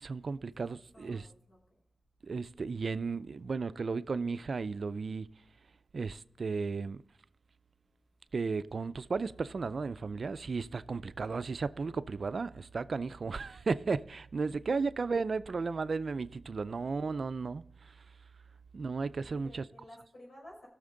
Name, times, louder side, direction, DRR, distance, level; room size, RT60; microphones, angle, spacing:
voice 1, 0.0-1.3 2.3-5.3 5.9-7.0 8.3-17.6 18.7-19.6, right 4 dB, 70° right, 0.4 m, -34 dB
voice 2, 0.9-1.6 14.7-14.8 16.3-16.4 19.3-20.7, left 1 dB, 70° left, 5.1 m, -55 dB
17.5 x 6.5 x 3.8 m
wide cardioid pair, 75°, 0 cm